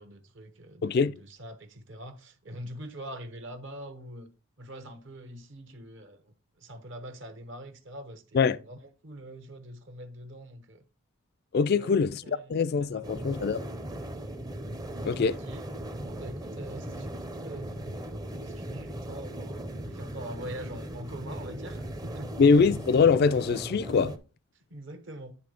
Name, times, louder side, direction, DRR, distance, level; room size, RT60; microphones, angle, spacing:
voice 1, 0.0-4.3 4.6-10.8 11.6-11.9 12.2-13.2 15.3-15.6 16.0-22.3 24.7-25.3, right 1 dB, 60° right, 1.0 m, -44 dB
voice 2, 0.8-1.2 8.3-8.6 11.5-12.2 12.5-13.6 15.0-15.4 22.4-24.1, left 5 dB, 45° left, 0.3 m, -23 dB
sound 1, 13.0-24.2, right 1 dB, 20° right, 0.6 m, -38 dB
9.6 x 3.2 x 5.1 m
head